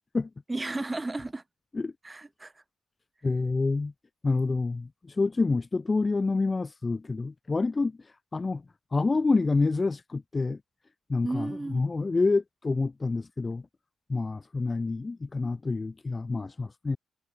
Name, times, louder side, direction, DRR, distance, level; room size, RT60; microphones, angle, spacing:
voice 1, 0.5-1.4 2.0-2.5 11.2-11.9, right 2 dB, 20° right, 7.4 m, -33 dB
voice 2, 3.2-3.9 4.2-8.0 8.3-8.6 8.9-10.6 11.1-13.6 14.1-17.0, left 3 dB, 30° left, 0.9 m, -27 dB
supercardioid pair, 50°, 0 cm